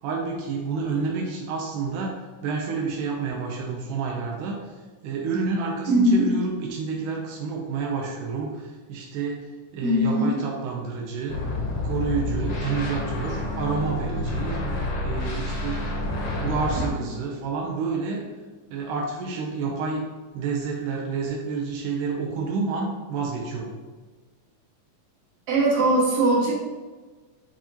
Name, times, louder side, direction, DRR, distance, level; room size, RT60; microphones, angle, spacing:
voice 1, 0.0-4.7 5.0-11.4 11.8-14.6 15.0-15.8 16.3-18.3 18.7-20.0 20.3-23.8, right 4 dB, 85° right, -1 dB, 2.3 m, -29 dB
voice 2, 5.9-6.3 9.8-10.3 25.5-26.5, right 1 dB, 50° right, -6 dB, 2.7 m, -20 dB
sound 1, 11.3-16.9, left 1 dB, 60° left, 1.9 m, -29 dB
10.0 x 3.6 x 2.9 m, 1.3 s
omnidirectional pair, 3.6 m